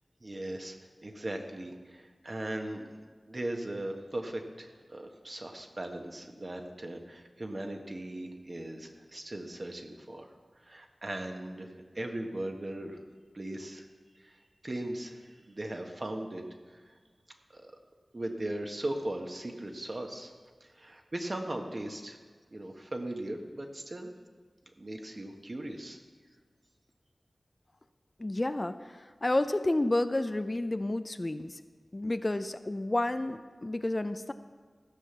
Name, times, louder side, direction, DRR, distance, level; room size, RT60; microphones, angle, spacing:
voice 1, 0.2-2.9 3.3-13.0 13.3-13.9 14.1-17.0 17.5-17.7 18.1-20.3 20.6-22.2 22.5-24.1 24.8-26.0, right 1 dB, 45° right, 3 dB, 1.3 m, -38 dB
voice 2, 28.2-31.6 31.9-34.3, left 1 dB, 35° left, 10 dB, 0.5 m, -30 dB
14.5 x 5.7 x 6.8 m, 1.6 s
cardioid pair, 45°, 0 cm